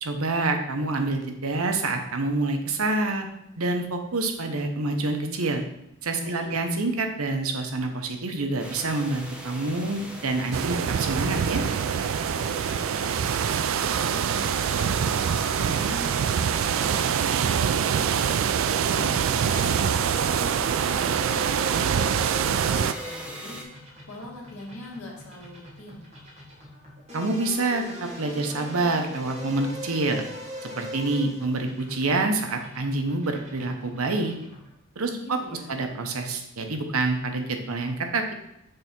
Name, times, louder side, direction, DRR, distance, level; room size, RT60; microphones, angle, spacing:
voice 1, 0.0-3.3 3.6-5.6 6.0-11.6 27.1-30.3 30.8-34.3 35.0-35.4 35.7-38.3, right 2 dB, 80° right, 5 dB, 0.9 m, -27 dB
voice 2, 6.2-6.6 12.6-18.3 18.9-22.3 22.6-23.6 24.1-26.1 35.0-35.7, left 1 dB, 80° left, -2 dB, 2.0 m, -43 dB
sound 1, 8.6-23.6, right 1 dB, 5° right, 0.8 m, -40 dB
sound 2, 10.5-22.9, right 7 dB, 65° right, 0.3 m, -25 dB
sound 3, 19.4-34.8, equal, 30° right, 1.7 m, -41 dB
6.7 x 3.4 x 5.9 m, 0.80 s
head